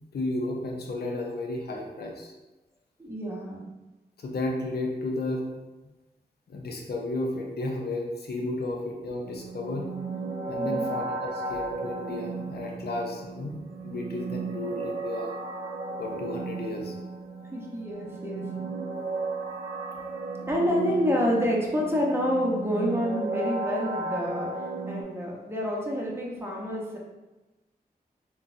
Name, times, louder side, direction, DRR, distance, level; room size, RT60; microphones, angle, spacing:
voice 1, 0.0-2.3 4.2-5.5 6.5-9.9 10.5-15.3 16.0-16.9, left 2 dB, 75° left, 1 dB, 0.6 m, -33 dB
voice 2, 3.0-3.6 10.6-10.9 17.5-18.5 20.5-27.0, equal, 15° right, -3 dB, 0.9 m, -28 dB
sound 1, 9.2-25.0, right 3 dB, 90° right, 0.4 m, -35 dB
3.8 x 2.3 x 2.6 m, 1.1 s
cardioid pair, 40°, 17 cm